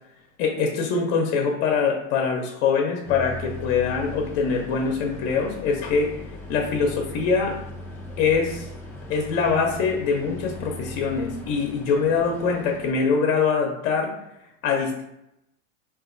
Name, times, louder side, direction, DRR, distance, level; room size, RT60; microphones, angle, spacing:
voice 1, 0.4-6.1 6.5-7.6 8.2-8.7 9.1-14.1 14.6-15.0, left 5 dB, 60° left, 2 dB, 0.7 m, -23 dB
sound 1, 3.0-12.9, left 1 dB, 5° left, 0.5 m, -39 dB
4.0 x 2.5 x 2.5 m, 0.83 s
supercardioid pair, 120°, 40 cm